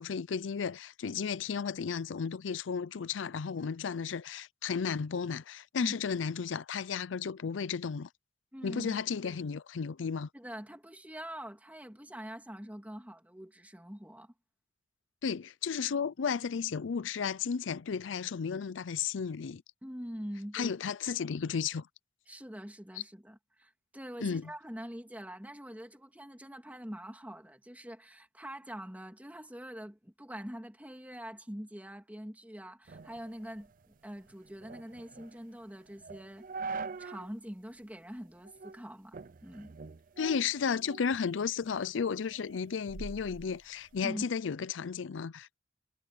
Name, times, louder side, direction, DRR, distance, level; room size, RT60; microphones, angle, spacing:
voice 1, 0.0-8.1 8.6-10.3 15.2-19.6 20.5-21.9 24.2-24.5 40.2-45.6, left 6 dB, 85° left, 0.5 m, -33 dB
voice 2, 8.5-9.4 10.3-14.3 19.8-20.8 22.3-36.5 37.0-39.7 44.0-44.3, equal, 10° right, 2.8 m, -44 dB
sound 1, 32.9-37.3 37.7-37.8 38.4-38.8 39.1-41.2 41.6-44.0, right 4 dB, 50° right, 0.6 m, -44 dB
head